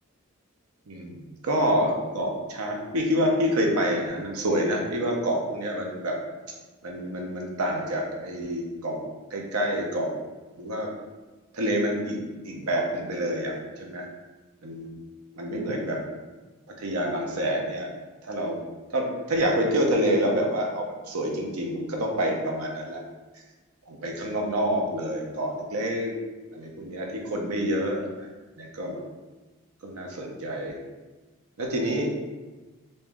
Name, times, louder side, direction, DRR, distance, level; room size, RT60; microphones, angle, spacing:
voice 1, 0.9-6.2 6.8-9.0 9.3-10.1 10.6-10.9 11.5-12.2 12.5-14.0 14.6-14.9 15.4-16.0 16.8-17.9 18.2-18.6 18.9-23.0 23.9-26.1 26.5-28.3 28.6-29.0 29.8-30.8 31.6-32.1, equal, 90° right, 0 dB, 0.7 m, -27 dB
3.0 x 2.7 x 3.5 m, 1.2 s
head